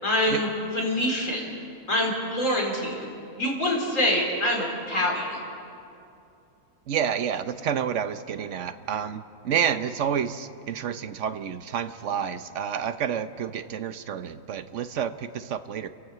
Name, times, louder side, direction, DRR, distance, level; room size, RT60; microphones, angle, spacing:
voice 1, 0.0-0.5 0.7-1.5 1.9-3.1 3.4-5.4, left 1 dB, 50° left, -1 dB, 4.4 m, -25 dB
voice 2, 6.9-15.9, right 8 dB, 55° right, 11 dB, 1.0 m, -29 dB
30.0 x 11.5 x 8.1 m, 2.6 s
omnidirectional pair, 1.7 m